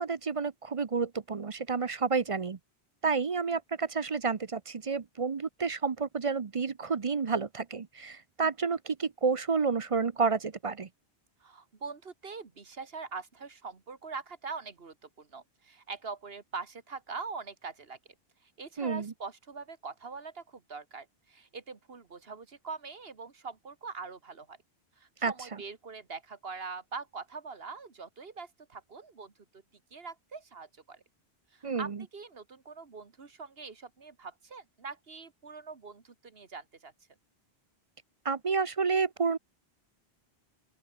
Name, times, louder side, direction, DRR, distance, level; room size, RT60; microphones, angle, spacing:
voice 1, 0.0-2.6 3.0-10.9 18.8-19.1 25.2-25.3 31.6-32.0 38.2-39.4, right 5 dB, 35° right, 0.7 m, -30 dB
voice 2, 11.4-18.0 18.4-24.6 25.0-29.6 29.9-31.0 31.5-36.9, right 4 dB, 65° right, 2.0 m, -43 dB
open air
omnidirectional pair, 1.1 m